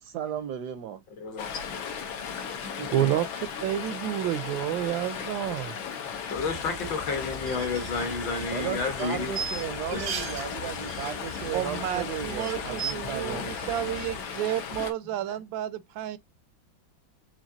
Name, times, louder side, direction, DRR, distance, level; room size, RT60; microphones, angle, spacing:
voice 1, 0.0-1.0 2.7-3.2 8.5-13.7, right 10 dB, 75° right, 1.0 m, -35 dB
voice 2, 1.2-1.5 6.3-9.3 9.9-10.2, left 4 dB, 70° left, 1.9 m, -31 dB
Stream, 1.4-14.9, left 7 dB, 90° left, 1.7 m, -36 dB
voice 3, 2.9-3.3 3.6-5.8 11.5-16.2, right 12 dB, 90° right, 1.4 m, -30 dB
sound 1, 6.3-14.2, left 3 dB, 45° left, 0.7 m, -44 dB
sound 2, 7.3-10.5 10.7-11.6 11.9-12.0 12.3-12.9, right 7 dB, 60° right, 0.7 m, -37 dB
5.1 x 3.2 x 2.7 m
omnidirectional pair, 2.1 m